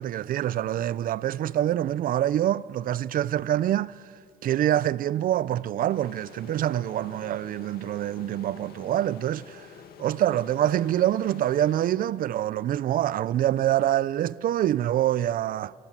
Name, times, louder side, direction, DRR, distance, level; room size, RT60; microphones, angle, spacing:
voice 1, 0.0-4.0 4.4-9.7 10.0-15.7, right 12 dB, 55° right, 0.6 m, -25 dB
sound 1, 5.9-12.6, left 7 dB, 65° left, 2.2 m, -48 dB
28.5 x 24.5 x 7.4 m
cardioid pair, 110°, 17 cm